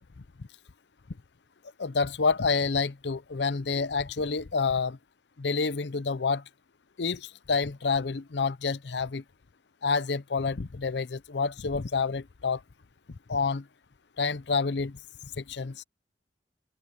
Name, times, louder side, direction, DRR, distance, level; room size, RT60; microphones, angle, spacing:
voice 1, 1.8-5.0 5.4-6.4 7.0-9.2 9.8-12.6 13.3-13.6 14.2-15.0 15.4-15.8, left 4 dB, 75° left, 0.6 m, -28 dB
open air
head